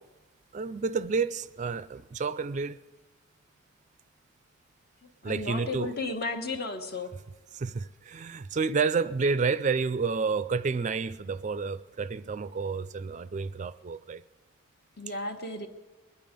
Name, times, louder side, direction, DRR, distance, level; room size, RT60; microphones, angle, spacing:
voice 1, 0.5-2.8 5.2-6.0 7.1-7.2 7.5-14.2, right 4 dB, 35° right, 0.4 m, -30 dB
voice 2, 5.0-7.1 15.0-15.7, left 3 dB, 50° left, 1.3 m, -34 dB
21.5 x 10.5 x 5.2 m
head